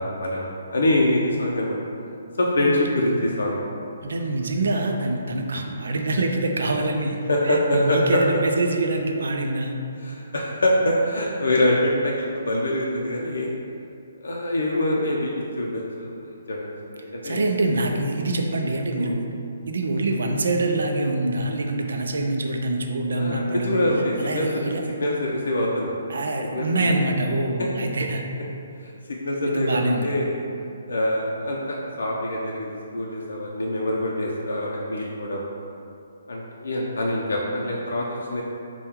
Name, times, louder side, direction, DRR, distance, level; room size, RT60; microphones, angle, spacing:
voice 1, 0.0-1.8 2.4-3.6 7.3-8.2 10.0-13.5 14.2-16.6 16.9-17.5 19.0-19.2 23.1-25.9 26.5-26.9 27.6-27.7 28.8-30.4 30.9-35.4 36.3-38.4, left 1 dB, 85° left, -3 dB, 0.5 m, -25 dB
voice 2, 4.0-7.2 7.4-9.7 17.2-19.3 19.7-23.8 24.2-24.8 26.1-28.2 29.5-30.1, right 2 dB, 70° right, 3 dB, 0.4 m, -25 dB
3.5 x 2.2 x 4.3 m, 2.6 s
hypercardioid pair, 175°, 0 cm